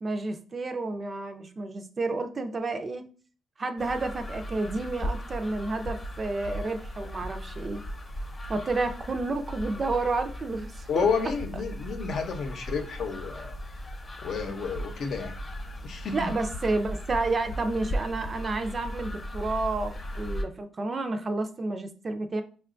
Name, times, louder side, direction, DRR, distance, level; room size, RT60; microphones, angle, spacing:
voice 1, 0.0-3.0 3.6-7.8 8.5-11.1 11.5-11.6 16.1-22.4, right 3 dB, 35° right, 7 dB, 0.4 m, -30 dB
sound 1, 3.8-20.4, equal, 30° left, 0.9 m, -37 dB
voice 2, 10.9-13.6 14.2-15.3 15.8-16.3, left 5 dB, 60° left, 5 dB, 0.7 m, -30 dB
5.0 x 2.3 x 2.5 m, 0.41 s
cardioid pair, 90°, 0 cm